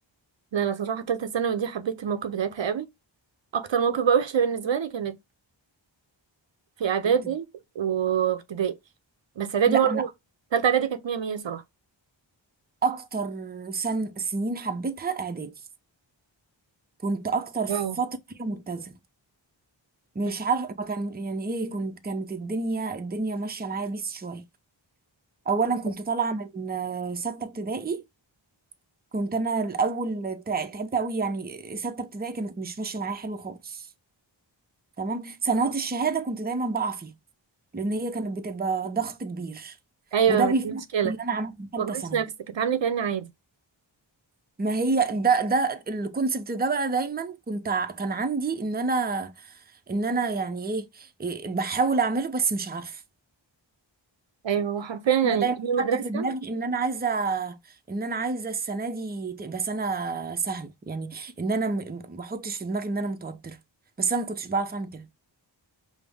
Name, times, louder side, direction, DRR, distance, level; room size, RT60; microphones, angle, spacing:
voice 1, 0.5-2.9 3.5-5.1 6.8-7.5 7.8-8.7 9.4-10.1 10.5-11.6 17.7-18.0 40.1-41.1 41.8-43.3 54.4-56.3, right 8 dB, 70° right, 0.6 m, -25 dB
voice 2, 9.7-10.0 12.8-15.5 17.0-19.0 20.2-24.4 25.5-28.0 29.1-33.9 35.0-37.1 37.7-39.8 40.3-42.2 44.6-49.5 49.9-53.0 55.2-57.6 57.9-63.6 64.0-65.1, right 4 dB, 20° right, 0.5 m, -28 dB
5.1 x 2.0 x 3.4 m
wide cardioid pair, 40°, 46 cm